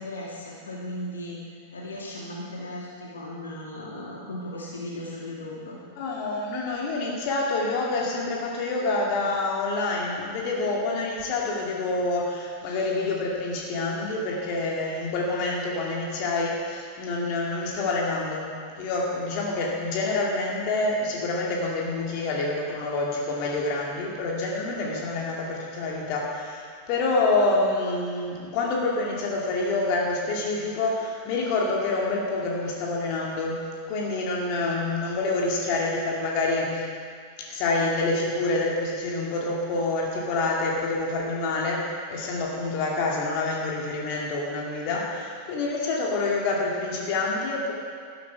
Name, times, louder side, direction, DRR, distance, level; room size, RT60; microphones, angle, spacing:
voice 1, 0.0-1.4 1.7-5.8, left 1 dB, 70° left, -4 dB, 2.2 m, -36 dB
voice 2, 6.0-18.5 18.8-36.8 37.5-47.7, left 2 dB, 45° left, -2 dB, 2.5 m, -27 dB
12.5 x 11.0 x 4.8 m, 2.1 s
figure-of-eight pair, 90°, 0 cm